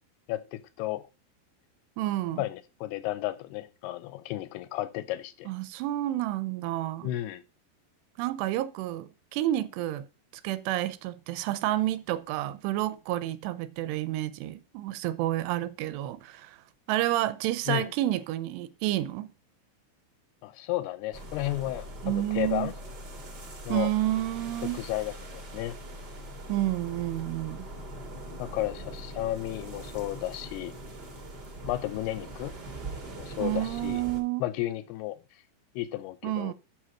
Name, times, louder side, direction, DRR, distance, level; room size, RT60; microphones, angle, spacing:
voice 1, 0.3-1.0 2.4-5.5 7.0-7.4 17.7-17.9 20.4-22.7 23.6-23.9 24.6-25.8 28.4-30.8 31.7-32.5 33.2-34.0 34.4-35.2 35.8-36.5, left 15 dB, 80° left, 2.5 m, -33 dB
voice 2, 2.0-2.4 5.5-7.1 8.2-10.1 10.4-16.6 16.9-19.3 22.0-22.7 23.7-24.8 26.5-27.7 33.4-34.4 36.2-36.5, right 14 dB, 85° right, 2.8 m, -30 dB
sound 1, 21.1-34.2, right 1 dB, 35° right, 1.8 m, -42 dB
7.7 x 6.4 x 5.8 m
omnidirectional pair, 4.9 m